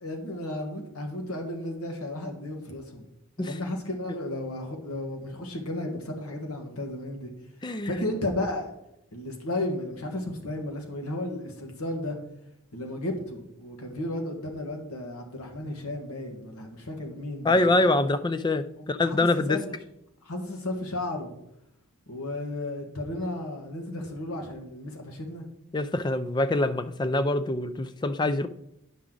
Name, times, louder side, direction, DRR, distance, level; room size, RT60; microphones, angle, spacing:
voice 1, 0.0-3.0 3.4-7.3 7.8-8.7 9.1-12.2 12.7-17.7 18.8-19.2 19.5-19.6 20.2-21.3 22.1-25.4, left 1 dB, 90° left, 1.4 m, -33 dB
voice 2, 7.6-8.0 17.4-19.6 25.7-28.5, left 2 dB, 20° left, 0.3 m, -25 dB
9.7 x 6.0 x 3.8 m
head